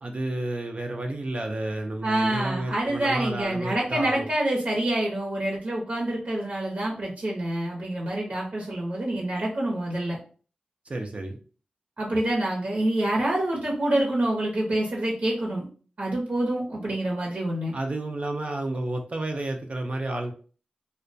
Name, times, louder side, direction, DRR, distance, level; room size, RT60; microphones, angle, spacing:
voice 1, 0.0-4.3 10.9-11.4 17.7-20.3, right 2 dB, 50° right, 4 dB, 0.4 m, -31 dB
voice 2, 2.0-10.2 12.0-15.6 16.0-17.7, right 1 dB, 75° right, -3 dB, 0.7 m, -27 dB
2.2 x 2.2 x 2.5 m, 0.39 s
wide cardioid pair, 65°, 3 cm